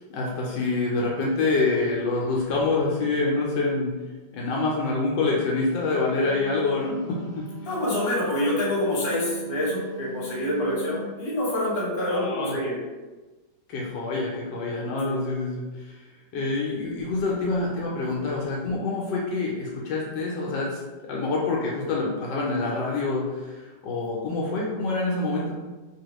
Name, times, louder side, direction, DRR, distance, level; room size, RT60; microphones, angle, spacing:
voice 1, 0.0-3.9 4.3-7.4 12.1-12.5 13.7-16.0 16.3-20.8 21.1-25.6, left 3 dB, 80° left, -3 dB, 1.2 m, -26 dB
Wind instrument woodwind instrument, 5.8-11.1, left 1 dB, 40° right, 0.8 m, -40 dB
voice 2, 7.7-12.7 15.0-15.2, left 1 dB, 35° left, -7 dB, 1.1 m, -26 dB
2.8 x 2.7 x 3.0 m, 1.2 s
omnidirectional pair, 2.0 m